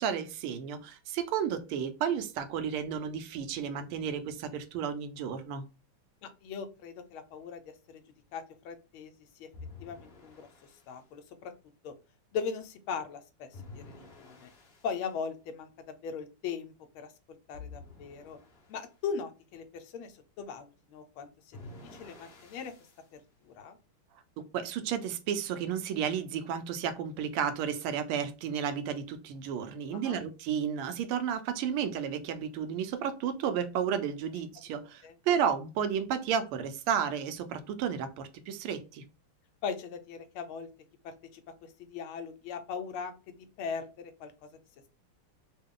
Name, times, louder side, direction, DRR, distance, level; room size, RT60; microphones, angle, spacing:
voice 1, 0.0-5.6 24.4-39.0, right 8 dB, 85° right, 1.5 m, -32 dB
voice 2, 6.2-7.6 7.9-8.0 8.3-9.1 9.4-9.5 9.8-10.5 10.9-11.5 11.8-11.9 12.3-13.5 13.7-14.5 14.8-15.7 16.0-17.1 17.5-18.4 18.7-21.6 21.9-22.7 23.4-23.8 29.9-30.2 35.0-35.1 39.6-40.7 41.0-41.4 41.8-44.3, left 6 dB, 75° left, 1.4 m, -39 dB
sound 1, 9.5-11.0 13.5-15.0 17.5-18.9 21.5-23.1, left 3 dB, 45° left, 0.7 m, -50 dB
3.6 x 2.3 x 3.6 m
omnidirectional pair, 2.4 m